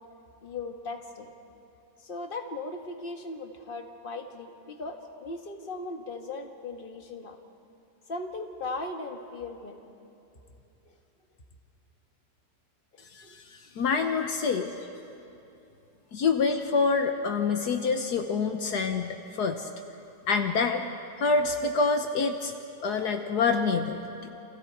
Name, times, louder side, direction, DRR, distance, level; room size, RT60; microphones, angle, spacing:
voice 1, 0.4-1.3 2.0-7.4 8.1-9.8 12.9-13.8 14.1-14.4 16.5-16.6, left 3 dB, 30° left, 4 dB, 1.7 m, -38 dB
voice 2, 13.8-14.7 16.1-19.7 20.3-20.8 21.2-22.5 22.8-24.0, left 4 dB, 70° left, 6 dB, 1.5 m, -26 dB
30.0 x 27.5 x 4.6 m, 2.9 s
omnidirectional pair, 1.8 m